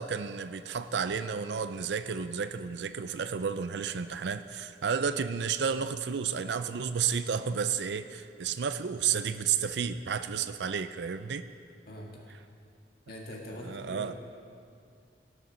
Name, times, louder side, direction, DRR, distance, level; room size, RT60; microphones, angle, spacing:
voice 1, 0.0-11.4 13.7-14.1, right 6 dB, 70° right, 10 dB, 0.5 m, -31 dB
voice 2, 11.9-12.2 13.1-14.1, equal, 60° left, -2 dB, 1.8 m, -43 dB
17.5 x 6.6 x 6.2 m, 2.5 s
head